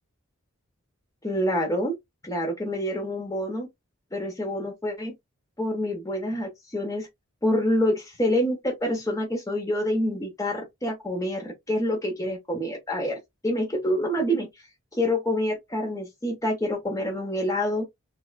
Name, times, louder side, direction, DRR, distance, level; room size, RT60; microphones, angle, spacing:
voice 1, 1.2-1.9 2.2-3.7 4.1-5.1 5.6-7.1 7.4-13.2 13.4-14.5 14.9-17.9, left 1 dB, 15° left, 0.8 m, -27 dB
3.0 x 2.2 x 2.2 m
head